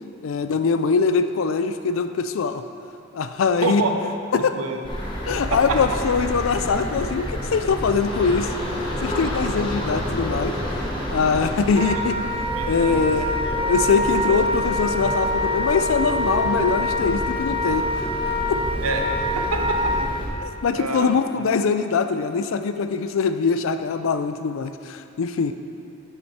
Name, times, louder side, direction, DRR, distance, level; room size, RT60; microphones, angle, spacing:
voice 1, 0.2-2.6 3.1-3.8 4.3-4.6 5.3-8.5 9.0-10.5 11.1-12.2 12.7-13.4 13.7-17.9 18.5-18.6 20.4-25.5, left 5 dB, 70° left, 9 dB, 0.4 m, -22 dB
voice 2, 3.6-4.0 4.5-4.8 5.5-6.0 11.9-12.0 12.5-13.1 13.4-13.6 18.8-19.1 19.4-19.9 20.7-21.5, right 3 dB, 85° right, 4 dB, 0.7 m, -27 dB
sound 1, 4.8-20.3, equal, 25° left, 1.1 m, -29 dB
Wind instrument woodwind instrument, 11.7-20.1, left 1 dB, 25° right, 0.4 m, -25 dB
7.8 x 5.8 x 4.2 m, 2.5 s
head